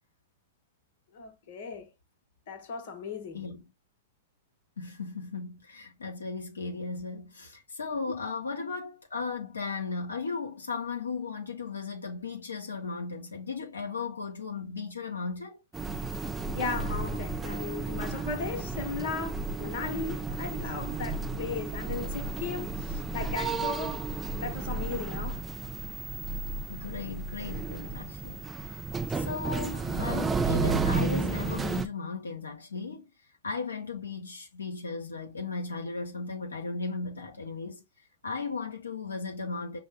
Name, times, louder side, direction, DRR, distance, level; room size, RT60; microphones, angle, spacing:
voice 1, 1.1-1.9 2.5-3.5 16.5-24.0 24.4-25.4, left 5 dB, 55° left, 0.9 m, -36 dB
voice 2, 4.8-15.6 26.7-28.8 29.1-33.0 33.4-37.8 38.2-39.8, left 4 dB, 85° left, 0.7 m, -36 dB
sound 1, 15.7-31.9, right 3 dB, 15° right, 0.3 m, -32 dB
5.3 x 2.1 x 3.2 m
hypercardioid pair, 105°, 0 cm